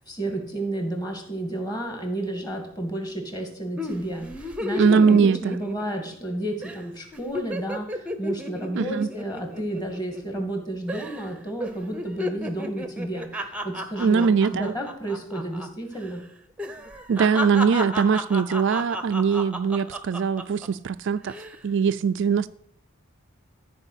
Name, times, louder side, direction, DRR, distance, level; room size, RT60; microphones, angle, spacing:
voice 1, 0.1-16.2, right 1 dB, 20° left, 2.3 m, -31 dB
sound 1, 3.8-6.3 6.6-6.8 7.1-10.6 10.9-11.3 11.6-15.7 15.9-16.1 16.6-20.7 21.2-21.6, left 1 dB, 5° right, 0.8 m, -33 dB
voice 2, 4.8-5.5 8.8-9.1 14.0-14.7 17.1-21.3 21.6-22.5, right 6 dB, 55° right, 0.3 m, -21 dB
13.5 x 4.9 x 8.1 m
head